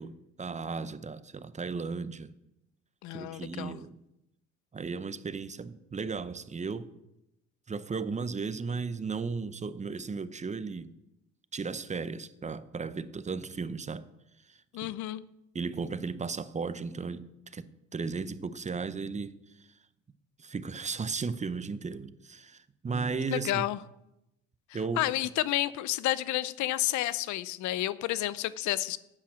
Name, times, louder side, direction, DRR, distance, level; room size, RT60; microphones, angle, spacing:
voice 1, 0.0-2.3 3.1-4.0 4.7-6.9 7.7-11.0 11.5-14.1 14.5-14.9 15.5-17.3 17.5-19.7 20.4-23.7 24.7-25.0, right 4 dB, 25° right, 0.7 m, -35 dB
voice 2, 3.0-3.8 14.7-15.2 23.3-23.8 25.0-29.0, left 15 dB, 75° left, 0.7 m, -30 dB
10.0 x 8.9 x 7.4 m
cardioid pair, 90°, 29 cm